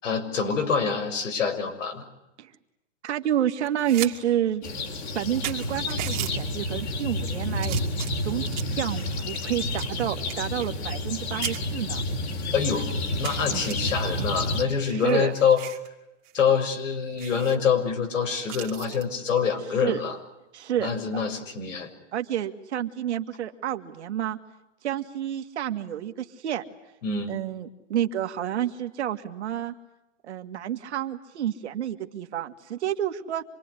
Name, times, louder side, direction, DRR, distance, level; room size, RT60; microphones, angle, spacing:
voice 1, 0.0-2.0 12.5-12.9 13.2-15.6 16.3-20.2 20.8-21.9 27.0-27.4, left 6 dB, 85° left, 4 dB, 6.7 m, -25 dB
voice 2, 3.0-4.7 5.1-7.8 8.2-12.0 13.5-13.8 14.9-15.3 19.8-20.0 20.5-20.9 22.1-24.4 24.8-26.6 27.3-29.7 30.2-33.4, right 11 dB, 60° right, 7 dB, 2.1 m, -29 dB
sound 1, 3.6-4.1 4.5-4.6 5.1-5.2 5.4-6.3 7.0-7.3 7.6-8.8 9.3-11.2 11.4-11.6 12.2-12.3 12.6-12.7 13.2-13.7 14.6-15.9 16.2-16.4 16.7-16.8 17.2-17.6 18.5-19.1 20.8-21.0, right 14 dB, 25° right, 2.5 m, -37 dB
sound 2, 4.6-14.6, left 1 dB, 60° left, 5.0 m, -30 dB
27.0 x 21.5 x 9.9 m, 0.93 s
hypercardioid pair, 170°, 37 cm